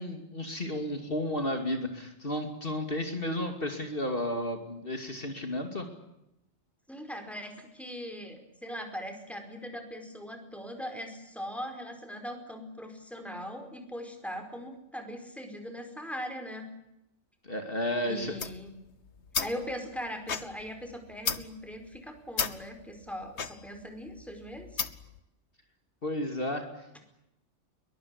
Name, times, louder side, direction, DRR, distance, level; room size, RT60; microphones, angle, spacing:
voice 1, 0.0-5.9 17.4-18.4 26.0-27.0, left 1 dB, 50° left, 5 dB, 2.9 m, -33 dB
voice 2, 6.9-16.7 18.0-18.7 19.4-24.9, equal, ahead, 5 dB, 4.9 m, -40 dB
sound 1, 18.2-25.2, left 6 dB, 65° left, 1.6 m, -36 dB
22.5 x 21.5 x 9.9 m, 0.86 s
omnidirectional pair, 1.2 m